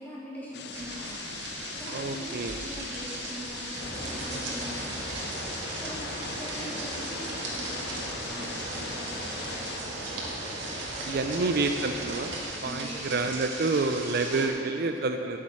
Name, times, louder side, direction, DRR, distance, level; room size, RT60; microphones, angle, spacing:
voice 1, 0.0-11.6 12.6-13.2 14.3-14.9, equal, 10° left, -9 dB, 2.8 m, -43 dB
sound 1, 0.5-9.8, left 6 dB, 55° left, 0.6 m, -41 dB
sound 2, 0.7-14.5, right 2 dB, 75° right, 1.8 m, -38 dB
voice 2, 1.9-2.6 11.1-12.3 12.6-15.4, right 3 dB, 55° right, 5 dB, 0.5 m, -28 dB
sound 3, 3.7-12.4, right 1 dB, 25° right, 2.7 m, -39 dB
8.5 x 7.6 x 8.3 m, 2.8 s
head